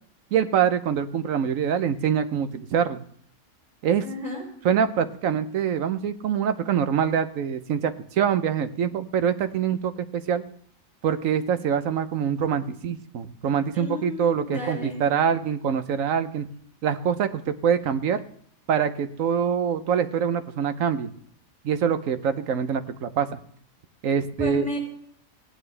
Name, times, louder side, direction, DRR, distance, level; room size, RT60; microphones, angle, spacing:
voice 1, 0.3-3.0 3.8-4.1 4.6-10.4 11.0-16.5 16.8-18.2 18.7-21.1 21.6-23.4 24.0-24.6, right 7 dB, 70° right, 11 dB, 1.1 m, -24 dB
voice 2, 4.0-4.5 13.7-15.1 24.4-24.8, left 2 dB, 5° left, -1 dB, 5.2 m, -33 dB
17.5 x 9.1 x 3.3 m, 0.64 s
omnidirectional pair, 1.5 m